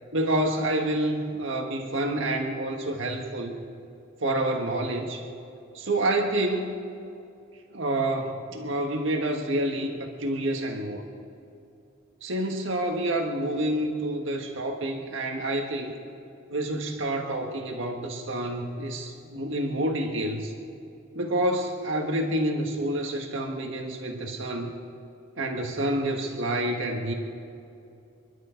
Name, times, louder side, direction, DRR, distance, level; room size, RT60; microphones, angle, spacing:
voice 1, 0.1-3.5 4.2-5.3 5.7-6.8 7.7-11.0 12.2-15.9 16.5-20.5 21.1-24.7 25.4-27.1, right 1 dB, 80° right, 2 dB, 1.6 m, -28 dB
27.5 x 11.5 x 3.9 m, 2.7 s
head